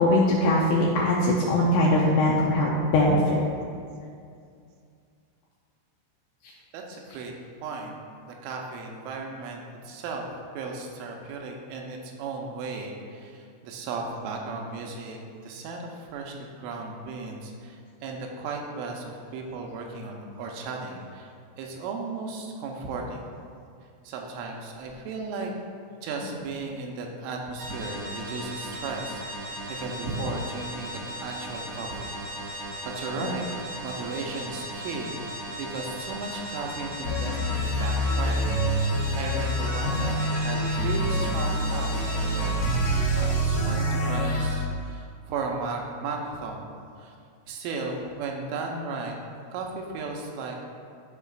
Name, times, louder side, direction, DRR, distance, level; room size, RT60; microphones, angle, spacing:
voice 1, 0.0-3.4 33.2-33.3, left 1 dB, 85° left, -4 dB, 2.6 m, -21 dB
voice 2, 6.7-7.3 7.6-10.3 10.6-21.3 21.6-23.3 24.0-25.5 26.0-30.9 31.2-32.1 32.5-32.7 33.0-33.4 33.8-46.7 47.0-47.1 47.5-49.2 49.5-50.6, right 3 dB, 80° right, 1 dB, 3.1 m, -35 dB
sound 1, 27.6-42.5, right 1 dB, 55° right, 1.7 m, -37 dB
sound 2, 37.0-44.6, equal, 60° left, 2.4 m, -26 dB
13.5 x 5.4 x 2.4 m, 2.3 s
omnidirectional pair, 5.7 m